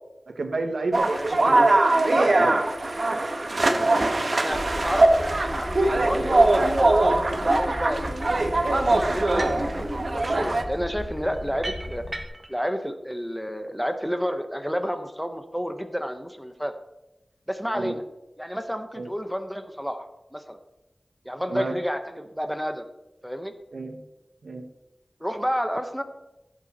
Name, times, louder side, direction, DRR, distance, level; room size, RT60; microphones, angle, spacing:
voice 1, 0.3-1.8 2.2-2.7 3.1-3.2 17.7-17.9 18.9-19.1 21.5-21.8 23.7-24.0 24.4-24.6, right 3 dB, 85° right, 6 dB, 1.2 m, -30 dB
sound 1, 0.9-10.6, right 2 dB, 55° right, 1.4 m, -22 dB
voice 2, 4.3-7.2 7.4-8.1 8.9-12.0 12.5-16.7 17.5-18.0 18.4-20.6 21.2-22.8 23.2-23.5 25.2-26.0, equal, ahead, 7 dB, 1.2 m, -30 dB
sound 2, 4.5-12.2, left 1 dB, 20° left, 1.5 m, -36 dB
sound 3, 8.2-8.5 9.2-9.7 10.0-12.6, right 1 dB, 25° right, 1.8 m, -38 dB
15.5 x 8.2 x 4.4 m, 0.95 s
wide cardioid pair, 70°, 0 cm